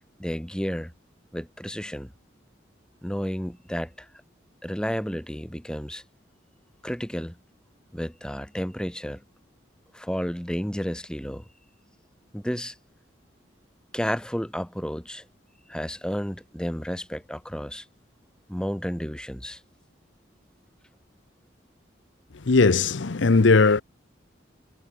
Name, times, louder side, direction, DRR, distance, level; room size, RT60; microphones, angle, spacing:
voice 1, 0.2-0.9 1.3-2.1 3.0-4.1 4.6-6.0 6.8-7.4 7.9-9.2 9.9-11.4 12.3-12.8 13.9-15.3 15.7-17.9 18.5-19.6, equal, 5° left, 1.8 m, -31 dB
voice 2, 22.5-23.8, left 3 dB, 75° left, 0.8 m, -18 dB
head